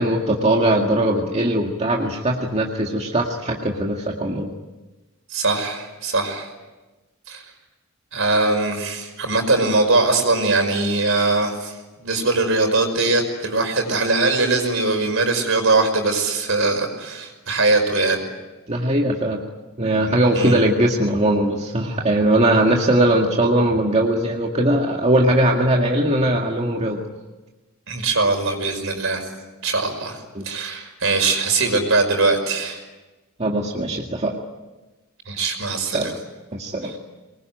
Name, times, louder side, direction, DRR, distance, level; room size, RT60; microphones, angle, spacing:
voice 1, 0.0-4.5 18.7-19.4 19.8-27.0 30.4-30.5 33.4-34.3 35.9-36.2 36.5-36.9, right 1 dB, 30° right, 0 dB, 2.0 m, -20 dB
voice 2, 5.3-6.5 7.3-7.4 8.1-11.7 12.0-18.2 20.3-20.6 27.9-29.2 29.6-30.2 30.4-32.8 35.3-36.1 36.8-36.9, right 3 dB, 65° right, 5 dB, 5.5 m, -21 dB
24.5 x 21.5 x 9.3 m, 1.2 s
head